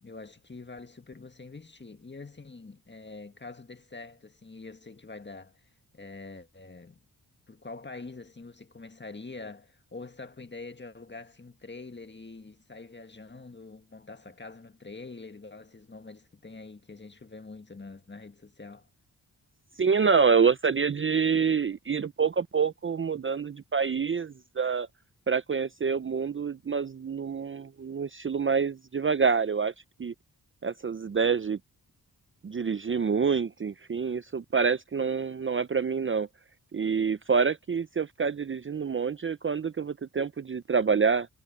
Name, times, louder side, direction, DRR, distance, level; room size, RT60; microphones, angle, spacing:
voice 1, 0.0-5.7 5.9-7.0 7.5-18.9, left 3 dB, 30° left, 1.8 m, -45 dB
voice 2, 19.8-24.9 25.3-29.7 30.0-30.1 30.6-31.6 32.4-36.3 36.7-41.3, right 5 dB, 30° right, 0.6 m, -27 dB
cardioid pair, 60°, 38 cm